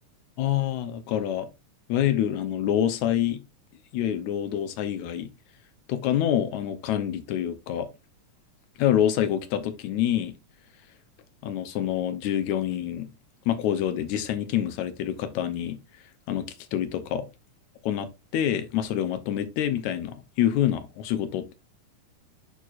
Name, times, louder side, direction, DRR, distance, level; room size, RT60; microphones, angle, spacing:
voice 1, 0.4-1.5 1.9-3.4 3.9-5.3 5.9-7.9 8.8-10.3 11.4-13.1 13.5-15.8 16.3-17.2 17.8-21.5, left 10 dB, 75° left, 2.0 m, -26 dB
11.0 x 4.3 x 2.4 m
omnidirectional pair, 3.5 m